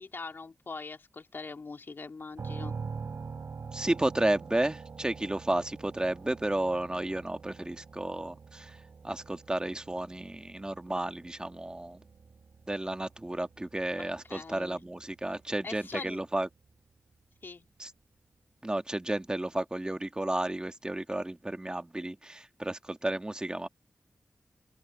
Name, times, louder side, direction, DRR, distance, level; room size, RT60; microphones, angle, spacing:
voice 1, 0.0-2.7 14.0-14.8 15.6-16.2 17.4-17.7, left 4 dB, 55° left, 2.7 m, -42 dB
sound 1, 2.4-16.1, right 5 dB, 75° right, 7.8 m, -45 dB
voice 2, 3.7-8.7 9.0-12.0 12.7-16.5 17.8-17.9 18.6-23.7, right 1 dB, 20° right, 1.7 m, -32 dB
open air
wide cardioid pair, 75°, 4 cm